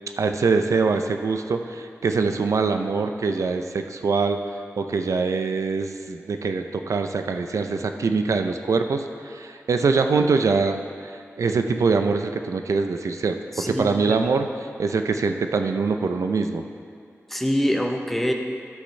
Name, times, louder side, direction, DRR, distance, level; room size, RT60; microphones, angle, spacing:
voice 1, 0.2-4.4 4.8-13.4 13.7-14.5 14.8-16.6, right 4 dB, 75° right, 6 dB, 0.5 m, -23 dB
voice 2, 13.6-14.2 17.3-18.3, equal, 5° left, 2 dB, 0.7 m, -24 dB
12.0 x 7.8 x 3.2 m, 2.3 s
wide cardioid pair, 120°, 5 cm